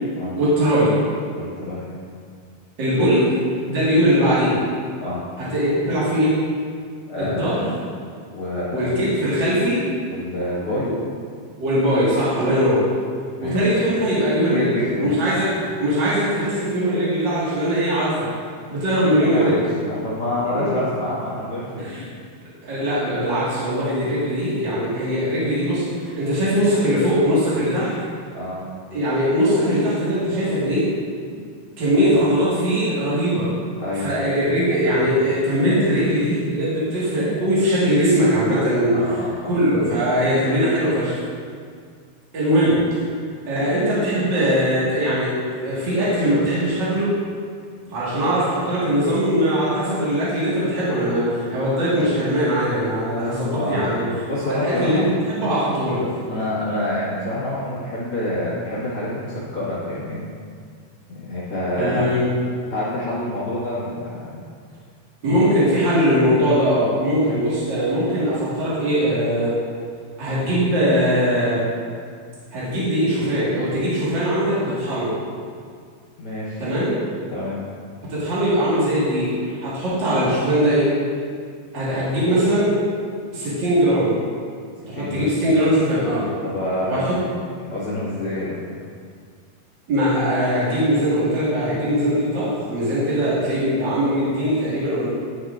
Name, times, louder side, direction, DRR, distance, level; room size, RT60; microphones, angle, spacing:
voice 1, 0.3-1.0 2.8-3.3 3.6-4.6 5.4-6.3 7.2-7.7 8.7-9.8 10.8-10.9 11.6-12.9 13.4-14.7 15.0-18.3 18.7-19.6 20.4-20.7 21.8-22.0 22.6-27.9 28.9-30.9 31.8-33.5 33.9-39.2 39.5-41.2 42.3-43.1 43.4-47.1 47.9-54.0 54.4-56.0 61.7-62.4 65.2-69.5 70.2-71.6 72.5-75.1 76.6-77.0 78.1-80.9 81.7-82.8 83.3-84.1 84.9-86.3 86.9-87.1 89.9-95.1, equal, 50° right, -9 dB, 1.4 m, -20 dB
voice 2, 1.4-1.9 5.0-5.2 7.1-7.5 8.3-9.0 10.1-10.9 13.4-13.6 14.5-15.1 18.7-19.5 19.8-21.8 28.3-28.6 31.9-32.2 33.8-34.2 38.9-39.5 53.5-54.0 54.2-55.1 56.3-60.2 61.1-62.1 62.7-64.4 76.2-76.6 77.3-77.6 79.8-79.9 81.9-82.0 84.9-85.3 86.4-87.2 87.5-88.6, left 1 dB, 50° left, -10 dB, 1.8 m, -27 dB
11.0 x 6.4 x 2.4 m, 2.1 s
omnidirectional pair, 4.5 m